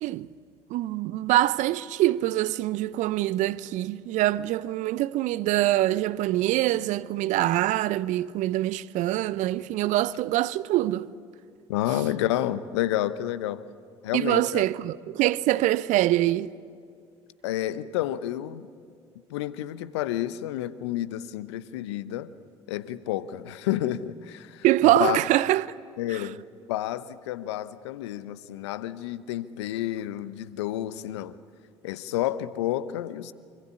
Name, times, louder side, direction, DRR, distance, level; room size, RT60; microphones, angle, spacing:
voice 1, 0.7-11.1 14.1-16.5 24.6-25.7 26.1-26.3, right 15 dB, 60° right, 0.8 m, -24 dB
voice 2, 11.7-13.6 14.0-14.6 17.4-18.7 19.3-22.3 22.7-24.6 25.0-25.2 26.0-26.4 26.7-31.3 31.8-33.3, left 13 dB, 75° left, 0.9 m, -30 dB
26.0 x 25.5 x 8.5 m
figure-of-eight pair, 55°, 14 cm